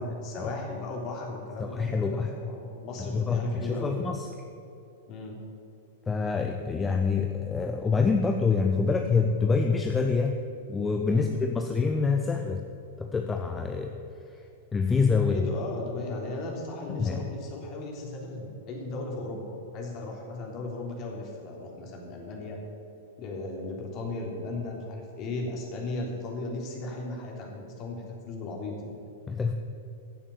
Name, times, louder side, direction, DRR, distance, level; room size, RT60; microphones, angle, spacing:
voice 1, 0.0-4.0 5.1-5.4 11.1-11.3 15.3-22.6 23.2-28.9, left 2 dB, 35° left, 0 dB, 3.4 m, -36 dB
voice 2, 1.6-2.3 3.0-4.3 6.1-10.4 10.7-12.6 13.0-13.9 14.7-15.4 16.9-17.3 29.3-29.5, left 4 dB, 15° left, 4 dB, 0.9 m, -26 dB
15.5 x 7.1 x 8.9 m, 2.6 s
figure-of-eight pair, 100°, 0 cm